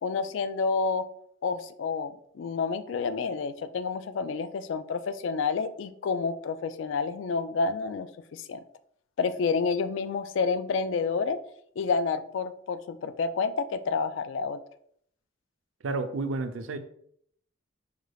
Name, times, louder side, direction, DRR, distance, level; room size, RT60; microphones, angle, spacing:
voice 1, 0.0-1.1 1.4-8.6 9.2-11.4 11.8-14.6, left 5 dB, 70° left, 12 dB, 0.3 m, -29 dB
voice 2, 15.8-16.8, right 3 dB, 80° right, 8 dB, 0.5 m, -31 dB
5.0 x 2.3 x 3.2 m, 0.66 s
head